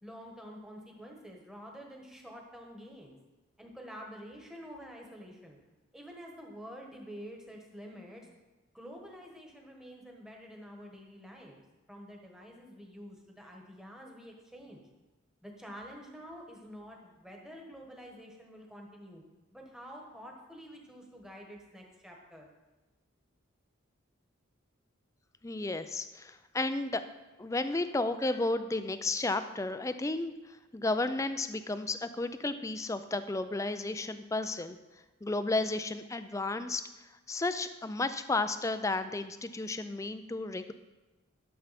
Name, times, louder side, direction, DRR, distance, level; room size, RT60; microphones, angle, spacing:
voice 1, 0.0-3.2 3.6-5.6 5.9-8.3 8.7-11.6 11.9-14.8 15.4-19.2 19.5-22.5, equal, 5° right, 0 dB, 1.3 m, -48 dB
voice 2, 25.4-27.0 27.4-34.8 35.2-36.8 37.3-40.7, left 2 dB, 15° left, 11 dB, 0.4 m, -33 dB
12.0 x 6.9 x 4.2 m, 1.2 s
head